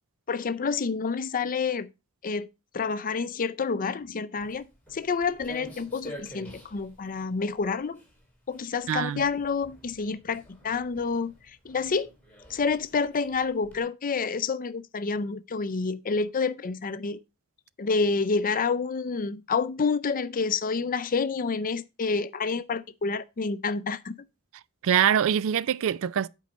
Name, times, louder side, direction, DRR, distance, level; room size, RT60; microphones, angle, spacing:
voice 1, 0.3-1.9 2.2-2.5 2.7-8.0 8.5-12.1 12.5-17.2 17.8-24.2, left 4 dB, 40° left, 0.5 m, -28 dB
Walk footsteps, 4.3-13.8, equal, 10° left, 2.8 m, -49 dB
voice 2, 8.9-9.2 24.8-26.3, right 9 dB, 65° right, 0.4 m, -24 dB
8.2 x 4.7 x 5.0 m
head